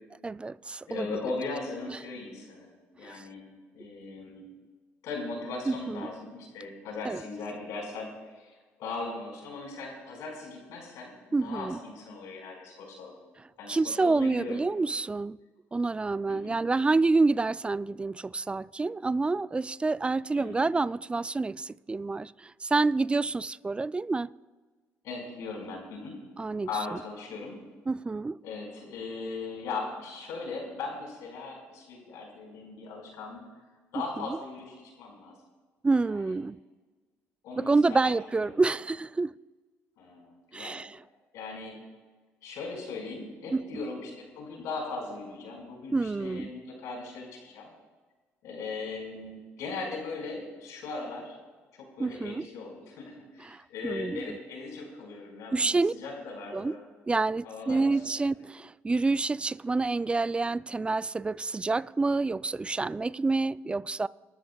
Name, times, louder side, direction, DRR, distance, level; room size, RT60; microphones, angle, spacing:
voice 1, 0.2-1.2 1.9-2.0 3.0-3.2 5.7-6.1 7.0-7.2 11.3-11.8 13.7-15.4 15.7-24.3 26.4-26.7 27.9-28.4 34.2-34.3 35.8-36.6 37.6-39.3 40.5-40.9 43.5-43.6 45.9-46.5 52.0-52.5 53.5-54.4 55.5-55.9 56.5-56.7 57.1-64.1, right 3 dB, 20° right, 0.3 m, -28 dB
voice 2, 0.9-2.7 3.0-3.4 3.7-4.4 5.0-11.1 11.4-13.3 13.6-14.6 16.3-16.6 20.4-20.8 25.0-26.2 26.7-27.6 28.4-33.4 33.9-35.3 36.0-36.3 37.4-38.6 40.0-40.8 41.3-41.8 42.4-47.7 48.4-51.4 51.7-56.8 57.4-58.1, left 3 dB, 80° left, 5.1 m, -39 dB
28.5 x 12.5 x 2.3 m
supercardioid pair, 80°, 6 cm